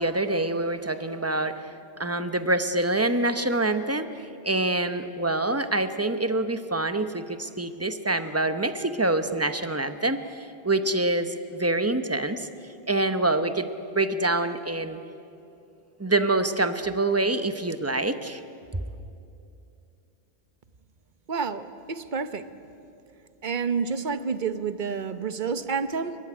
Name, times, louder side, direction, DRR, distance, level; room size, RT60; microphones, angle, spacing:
voice 1, 0.0-1.7 2.0-12.5 12.9-15.0 16.0-18.4, right 2 dB, 15° right, 10 dB, 0.9 m, -26 dB
voice 2, 21.3-22.4 23.4-26.2, right 5 dB, 50° right, 12 dB, 1.0 m, -29 dB
30.0 x 15.0 x 9.8 m, 2.7 s
omnidirectional pair, 1.1 m